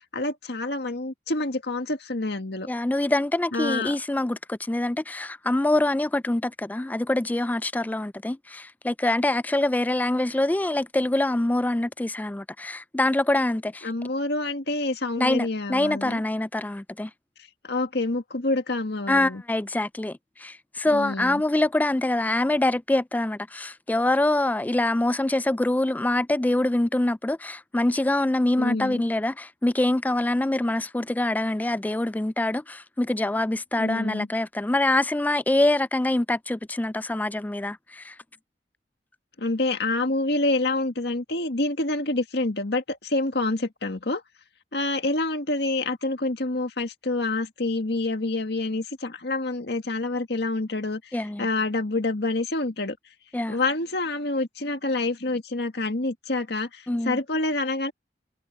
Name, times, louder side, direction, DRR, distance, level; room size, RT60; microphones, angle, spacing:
voice 1, 0.1-2.7 3.5-4.0 13.8-16.2 17.6-19.4 20.9-21.4 28.6-29.0 33.8-34.3 39.4-44.2 44.7-53.0 53.5-57.9, left 2 dB, 70° left, 2.0 m, -27 dB
voice 2, 2.7-13.9 15.2-17.1 19.1-38.1 51.1-51.5 53.3-53.6 56.9-57.2, left 1 dB, 10° left, 0.3 m, -25 dB
head